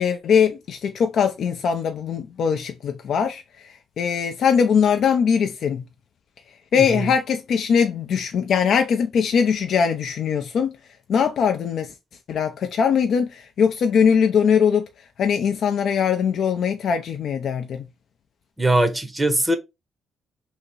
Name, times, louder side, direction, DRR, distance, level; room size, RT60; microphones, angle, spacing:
voice 1, 0.0-5.8 6.7-10.7 11.1-11.9 12.3-14.9 15.2-17.8, left 7 dB, 65° left, 0.4 m, -21 dB
voice 2, 18.6-19.6, right 1 dB, 10° right, 0.6 m, -20 dB
2.8 x 2.8 x 3.9 m
cardioid pair, 90°, 0 cm